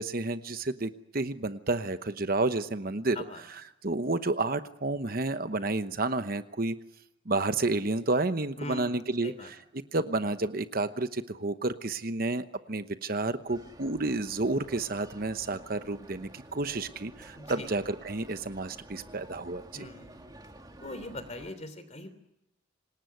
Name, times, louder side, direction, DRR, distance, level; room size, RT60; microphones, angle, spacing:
voice 1, 0.0-3.2 3.8-6.8 7.3-9.6 9.9-19.9, right 2 dB, 45° right, 10 dB, 1.0 m, -30 dB
voice 2, 8.6-8.9 9.2-9.5 17.3-17.7 19.7-20.2 20.8-22.1, left 1 dB, 35° left, 12 dB, 3.3 m, -41 dB
sound 1, 13.5-21.5, right 1 dB, 20° right, 2.3 m, -50 dB
26.5 x 19.5 x 9.4 m, 0.88 s
head